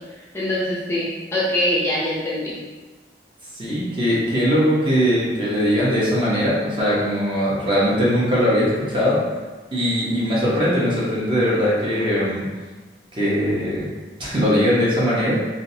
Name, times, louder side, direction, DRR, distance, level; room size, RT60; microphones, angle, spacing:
voice 1, 0.3-2.5, left 1 dB, 15° left, -8 dB, 0.6 m, -23 dB
voice 2, 3.5-9.2 9.7-12.4 13.1-13.9 14.2-15.4, equal, 30° right, -7 dB, 1.0 m, -20 dB
3.7 x 2.7 x 2.7 m, 1.3 s
head